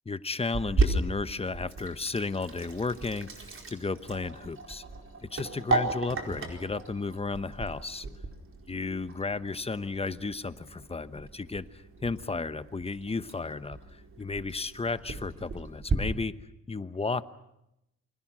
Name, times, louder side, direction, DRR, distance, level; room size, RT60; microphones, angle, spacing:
voice 1, 0.1-4.8 5.3-8.1 8.7-16.3 16.7-17.2, left 3 dB, 20° left, 13 dB, 1.0 m, -33 dB
Sink (filling or washing), 0.5-15.9, right 3 dB, 45° right, 4.6 m, -35 dB
28.0 x 24.5 x 6.2 m, 0.84 s
wide cardioid pair, 125°, 29 cm